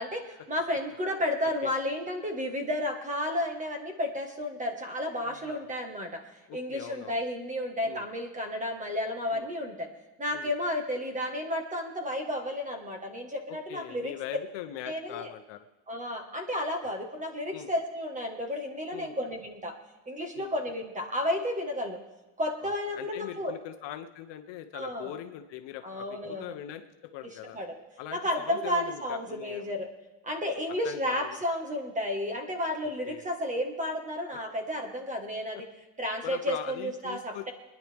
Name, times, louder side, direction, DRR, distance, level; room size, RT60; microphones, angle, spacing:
voice 1, 0.0-6.2 6.5-9.9 10.2-14.1 14.8-15.3 15.9-19.7 20.1-22.0 22.4-23.6 24.7-25.1 25.8-26.5 27.5-27.8 28.1-29.9 30.2-35.7 36.0-37.5, left 1 dB, 15° right, 4 dB, 1.6 m, -32 dB
voice 2, 5.2-5.7 6.5-7.2 7.8-8.0 9.3-9.5 10.3-10.5 13.5-15.7 17.5-17.7 18.9-19.2 20.3-20.6 22.6-27.6 28.0-29.8 30.8-31.4 33.0-33.3 36.2-37.5, left 12 dB, 60° left, 7 dB, 0.9 m, -41 dB
24.5 x 10.5 x 3.5 m, 1.1 s
cardioid pair, 165°, 49 cm